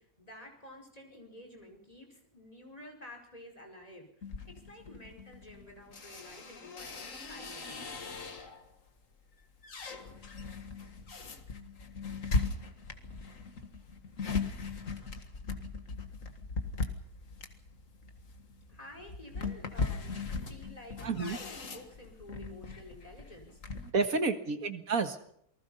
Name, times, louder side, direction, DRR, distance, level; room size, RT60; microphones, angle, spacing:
voice 1, 0.0-7.8 18.7-20.1 20.4-21.4 21.7-24.5, left 1 dB, 25° left, 1 dB, 4.9 m, -51 dB
sound 1, 4.2-8.7 9.2-23.9, left 4 dB, 60° left, 2.2 m, -39 dB
voice 2, 21.0-21.4 23.9-25.4, right 4 dB, 65° right, 7 dB, 2.2 m, -30 dB
28.5 x 19.5 x 5.6 m, 0.70 s
omnidirectional pair, 1.6 m